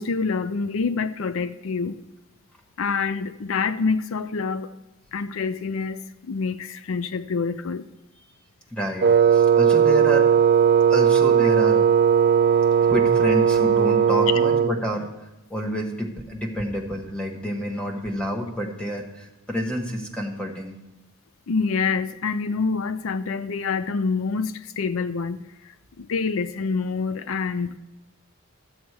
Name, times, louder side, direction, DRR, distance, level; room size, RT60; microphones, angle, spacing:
voice 1, 0.0-2.0 2.8-4.7 5.1-7.9 21.5-27.8, left 4 dB, 75° left, 0.5 m, -27 dB
voice 2, 8.7-10.3 10.9-11.9 12.8-15.1 15.5-20.7, equal, 5° left, 1.3 m, -28 dB
Wind instrument woodwind instrument, 9.0-14.8, right 7 dB, 45° right, 0.3 m, -17 dB
13.5 x 7.3 x 4.7 m
head